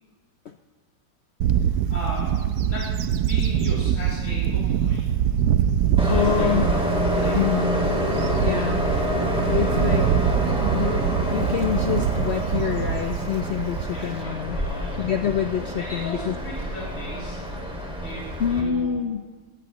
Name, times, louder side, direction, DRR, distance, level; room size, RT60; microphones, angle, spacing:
Bird / Wind, 1.4-14.2, right 9 dB, 75° right, 1.1 m, -24 dB
voice 1, 1.6-2.4 2.6-5.1 6.0-6.5 7.1-7.4 13.9-14.3 14.6-15.0 15.8-17.5 18.0-19.1, equal, 50° left, -7 dB, 3.3 m, -37 dB
Train, 6.0-18.6, equal, 5° right, 2.1 m, -27 dB
voice 2, 6.1-6.7 7.3-7.8 8.4-8.9 9.5-10.1 10.6-14.6 15.0-16.3 18.4-19.2, left 9 dB, 75° left, 7 dB, 0.6 m, -26 dB
18.5 x 14.0 x 3.0 m, 1.3 s
omnidirectional pair, 1.8 m